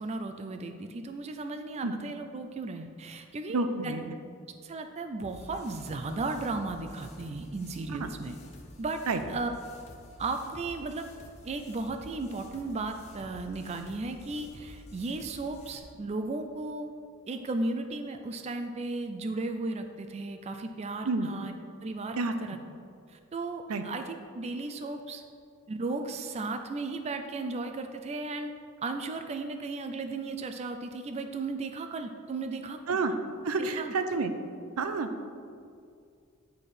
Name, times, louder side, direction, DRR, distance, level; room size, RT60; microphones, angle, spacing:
voice 1, 0.0-3.9 4.6-8.4 8.8-9.0 9.3-9.5 10.2-11.1 11.4-16.9 17.3-21.5 21.8-22.6 23.1-25.2 25.7-28.5 28.8-33.0 33.6-33.9, right 3 dB, 30° right, 6 dB, 0.3 m, -35 dB
voice 2, 3.5-4.1 7.9-8.1 9.1-9.2 21.0-21.3 22.2-22.3 23.7-23.8 32.9-33.1 33.4-34.3 34.8-35.1, right 3 dB, 80° right, 8 dB, 0.6 m, -29 dB
sound 1, 5.2-15.8, left 1 dB, 30° left, 1.1 m, -50 dB
9.2 x 4.3 x 4.9 m, 2.3 s
head